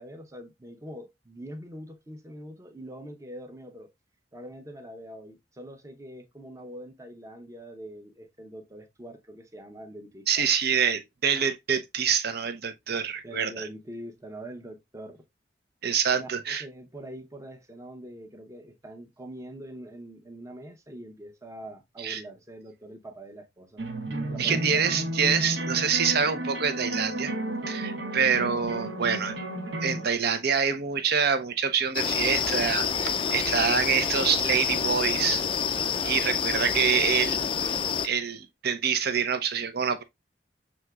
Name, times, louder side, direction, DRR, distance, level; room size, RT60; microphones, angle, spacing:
voice 1, 0.0-3.9 4.3-10.5 13.2-15.2 16.1-23.8 24.3-24.9, right 1 dB, 15° right, 0.7 m, -43 dB
voice 2, 10.3-13.7 15.8-16.6 22.0-22.2 24.4-27.3 27.7-29.3 29.8-35.4 36.0-37.8 38.0-40.0, right 7 dB, 60° right, 0.7 m, -26 dB
sound 1, 23.8-30.1, right 1 dB, 80° right, 1.2 m, -32 dB
sound 2, 31.9-38.1, left 7 dB, 30° left, 0.3 m, -27 dB
6.2 x 2.9 x 2.3 m
head